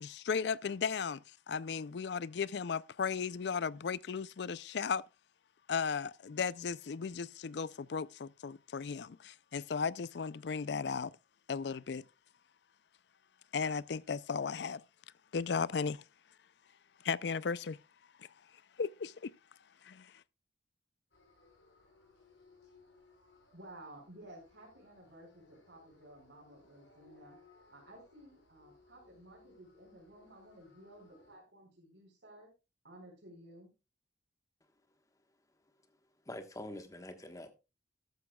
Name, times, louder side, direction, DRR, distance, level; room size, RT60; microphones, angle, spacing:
voice 1, 0.0-5.0 5.7-11.1 11.5-12.0 13.5-14.8 15.3-16.0 17.0-17.8 18.2-18.3 18.8-19.3 19.8-20.1, left 5 dB, 65° left, 0.4 m, -36 dB
sound 1, 21.1-31.4, left 3 dB, 85° left, 5.5 m, -64 dB
voice 2, 23.5-27.4 27.7-32.5 32.8-33.7, right 1 dB, 75° right, 4.8 m, -55 dB
voice 3, 36.2-37.5, left 1 dB, 20° left, 1.3 m, -45 dB
13.0 x 13.0 x 2.3 m
head